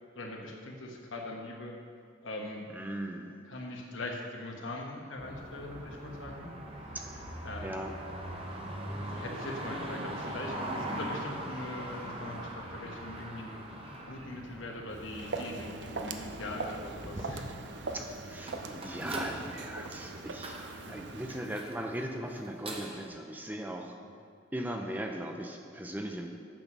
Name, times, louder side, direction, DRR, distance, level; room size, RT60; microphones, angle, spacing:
voice 1, 0.1-1.8 2.2-2.7 3.5-6.5 7.4-7.8 8.9-13.6 14.0-17.5 20.9-21.0, left 2 dB, 85° left, 1 dB, 1.3 m, -41 dB
voice 2, 2.7-3.4 6.9-7.3 7.6-8.0 17.9-20.6 20.9-23.9 24.5-26.3, right 1 dB, 10° right, 3 dB, 0.5 m, -38 dB
sound 1, 5.2-23.1, right 1 dB, 30° right, 0.9 m, -41 dB
Walk footsteps, 14.9-21.5, right 3 dB, 65° right, 0.6 m, -41 dB
8.7 x 6.2 x 6.1 m, 2.3 s
head